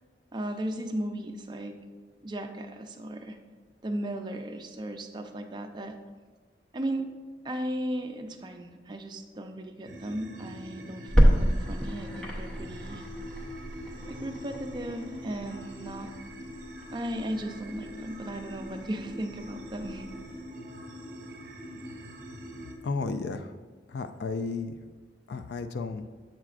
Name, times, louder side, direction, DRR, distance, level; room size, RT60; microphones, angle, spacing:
voice 1, 0.3-1.8 2.2-3.4 3.8-5.9 6.7-7.1 7.4-13.0 14.1-16.1 16.9-20.1, right 1 dB, 25° right, 5 dB, 0.4 m, -36 dB
sound 1, 9.8-22.7, equal, 50° right, 0.9 m, -43 dB
sound 2, 11.1-20.4, equal, 5° left, 0.7 m, -30 dB
voice 2, 22.8-23.5 23.9-24.7 25.3-26.1, left 4 dB, 65° left, 8 dB, 0.3 m, -33 dB
7.5 x 6.1 x 2.4 m, 1.4 s
head